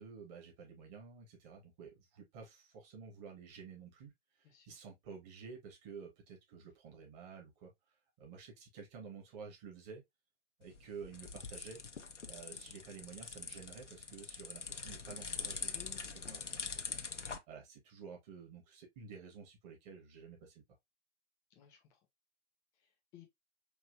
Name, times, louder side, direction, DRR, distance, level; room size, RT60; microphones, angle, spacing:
voice 1, 0.0-4.1 4.6-7.7 8.2-10.0 10.6-11.8 12.3-15.8 16.3-20.6, right 5 dB, 35° right, 2.1 m, -51 dB
voice 2, 4.4-4.8 15.7-16.4 21.5-22.1 22.7-23.3, left 10 dB, 10° left, 0.4 m, -58 dB
sound 1, 10.6-17.4, left 5 dB, 85° left, 0.7 m, -44 dB
4.6 x 3.0 x 2.8 m
figure-of-eight pair, 110°, 35 cm